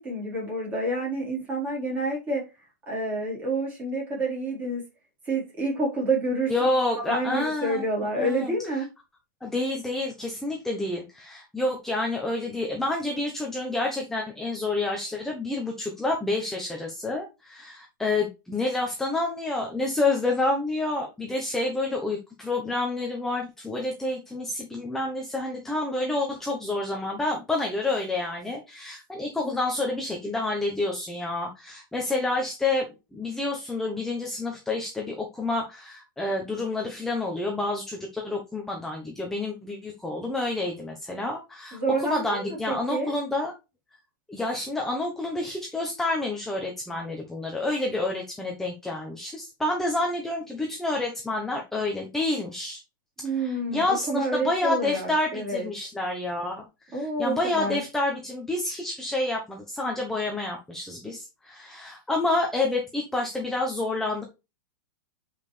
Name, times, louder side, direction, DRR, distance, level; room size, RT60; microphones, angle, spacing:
voice 1, 0.0-2.4 2.9-4.8 5.2-6.5 6.9-8.8 41.7-43.1 53.2-55.7 56.9-57.8, right 2 dB, 15° right, -3 dB, 4.5 m, -28 dB
voice 2, 6.5-7.9 8.2-8.5 9.4-43.5 44.3-52.8 53.3-64.2, left 2 dB, 5° left, 0 dB, 1.0 m, -29 dB
9.0 x 5.5 x 3.3 m, 0.27 s
hypercardioid pair, 155°, 11 cm